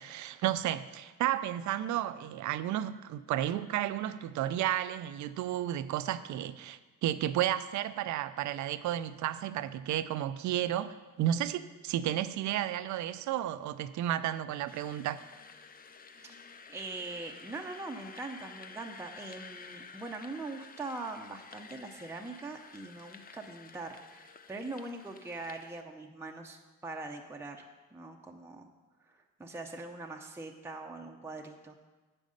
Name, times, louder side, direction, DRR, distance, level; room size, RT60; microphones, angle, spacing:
voice 1, 0.0-15.2, right 12 dB, 70° right, 14 dB, 0.5 m, -32 dB
sound 1, 14.7-25.8, left 5 dB, 30° left, 0.5 m, -51 dB
voice 2, 16.7-28.6 29.1-31.8, right 3 dB, 10° right, 2 dB, 0.7 m, -42 dB
8.4 x 5.3 x 6.5 m, 1.2 s
cardioid pair, 90°, 30 cm